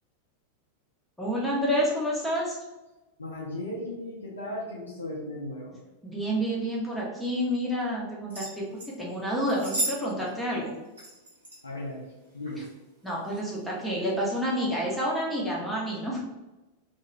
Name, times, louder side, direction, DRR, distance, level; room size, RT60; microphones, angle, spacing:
voice 1, 1.2-2.6 6.0-10.7 13.0-16.2, equal, 5° left, -5 dB, 0.6 m, -29 dB
voice 2, 3.2-5.8 11.6-12.1 12.3-12.7, left 1 dB, 80° left, -4 dB, 0.5 m, -36 dB
sound 1, 8.3-8.9 9.5-10.0 10.3-10.4 11.0-11.6 12.4-12.7 13.3-13.4, right 2 dB, 70° right, 0.9 m, -33 dB
2.3 x 2.2 x 3.0 m, 1.0 s
figure-of-eight pair, 90°, 0 cm